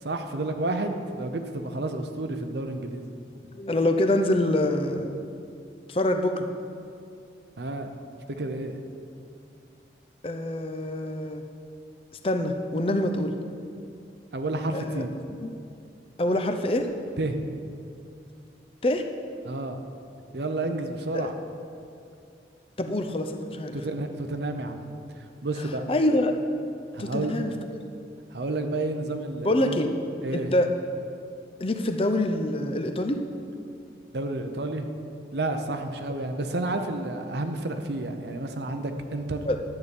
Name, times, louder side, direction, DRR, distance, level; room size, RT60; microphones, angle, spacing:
voice 1, 0.0-3.1 7.6-7.9 8.4-8.8 14.3-15.1 17.2-17.4 19.4-19.9 20.3-21.3 23.7-24.9 25.2-25.8 26.9-27.3 28.3-29.8 30.2-30.5 34.1-34.9 35.3-39.5, right 2 dB, 75° right, 6 dB, 0.8 m, -30 dB
voice 2, 3.5-5.2 5.9-6.5 10.2-11.4 12.2-13.3 14.7-15.0 15.4-15.5 16.2-16.9 18.8-19.1 21.1-21.3 22.8-23.8 25.9-26.4 27.0-27.5 29.4-29.9 30.3-30.7 31.6-33.2 39.5-39.6, left 1 dB, 30° left, 6 dB, 0.6 m, -25 dB
11.0 x 8.3 x 5.4 m, 2.4 s
head